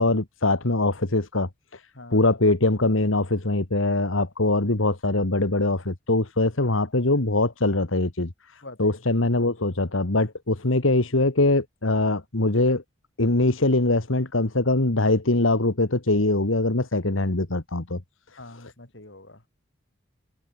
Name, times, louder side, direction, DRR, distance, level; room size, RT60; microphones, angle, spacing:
voice 1, 0.0-1.8 2.1-12.8 13.2-18.0, left 2 dB, 80° left, 1.9 m, -22 dB
voice 2, 4.4-4.7 6.6-6.7 8.6-9.0 18.4-19.4, left 2 dB, 60° left, 3.7 m, -44 dB
head